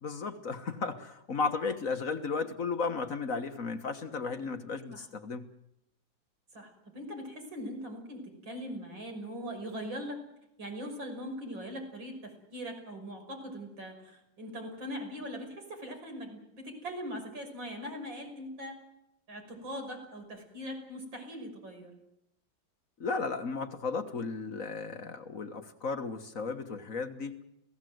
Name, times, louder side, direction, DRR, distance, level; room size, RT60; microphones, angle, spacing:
voice 1, 0.0-5.5 23.0-27.4, left 4 dB, 45° left, 7 dB, 1.7 m, -34 dB
voice 2, 6.5-10.2 10.6-18.8 19.3-21.9, equal, 85° right, 4 dB, 6.5 m, -41 dB
30.0 x 17.0 x 7.9 m, 0.84 s
omnidirectional pair, 2.0 m